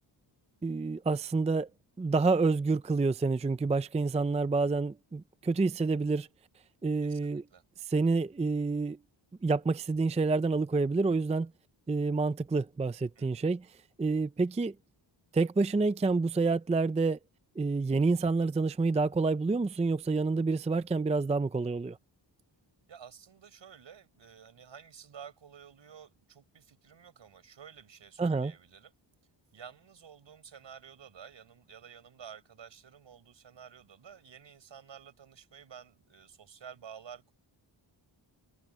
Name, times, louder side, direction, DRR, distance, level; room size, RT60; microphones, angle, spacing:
voice 1, 0.6-1.7 2.0-6.3 6.8-7.4 7.9-9.0 9.4-11.5 11.9-13.7 14.0-14.7 15.3-17.2 17.6-22.0 28.2-28.5, right 3 dB, 15° right, 0.4 m, -28 dB
voice 2, 7.0-7.6 13.1-13.5 22.9-28.9 29.5-37.3, right 7 dB, 70° right, 6.8 m, -51 dB
wide cardioid pair, 145°, 47 cm